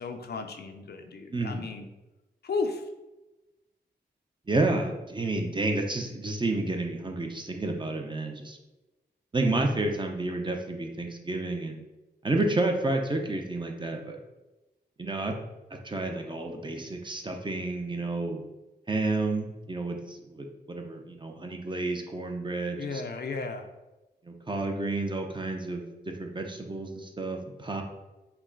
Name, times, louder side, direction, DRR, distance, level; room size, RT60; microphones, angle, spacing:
voice 1, 0.0-1.9 2.4-2.8 22.8-23.7, left 4 dB, 65° left, 5 dB, 0.5 m, -34 dB
voice 2, 1.3-1.7 4.5-8.6 9.3-11.8 12.2-14.2 15.0-15.4 15.8-18.4 18.9-23.0 24.2-25.9 26.2-27.8, right 2 dB, 25° right, 3 dB, 0.7 m, -30 dB
5.8 x 2.2 x 3.8 m, 1.1 s
cardioid pair, 70°, 18 cm